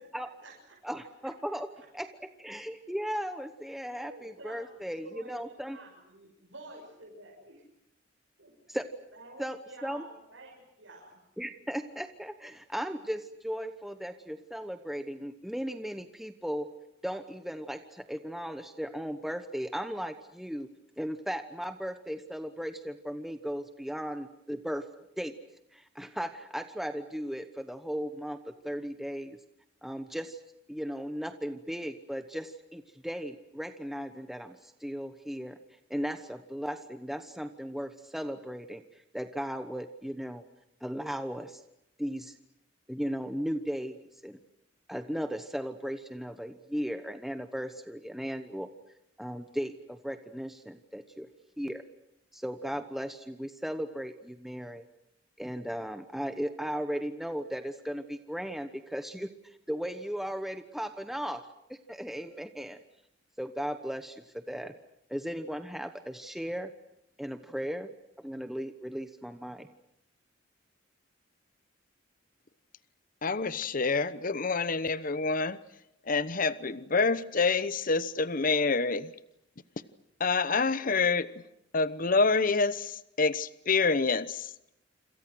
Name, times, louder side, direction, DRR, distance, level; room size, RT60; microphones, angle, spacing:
voice 1, 0.0-0.8 1.8-1.9 4.1-7.6 8.4-8.5 9.1-11.2, right 1 dB, 85° right, -3 dB, 6.6 m, -50 dB
voice 2, 0.8-1.7 1.9-5.8 8.7-8.9 9.4-10.0 11.4-16.7 17.0-20.7 21.0-24.9 25.1-25.4 25.7-29.4 29.8-30.4 30.7-40.4 40.8-41.6 42.0-42.4 42.9-44.4 44.9-48.7 49.2-51.3 51.6-51.8 52.3-54.8 55.4-62.8 63.4-64.7 65.1-66.7 67.2-67.9 68.2-69.7, equal, ahead, 8 dB, 1.1 m, -36 dB
voice 3, 73.2-75.6 76.0-79.1 80.2-81.4 81.7-84.5, left 4 dB, 45° left, 15 dB, 1.0 m, -27 dB
27.5 x 27.0 x 6.3 m, 0.81 s
head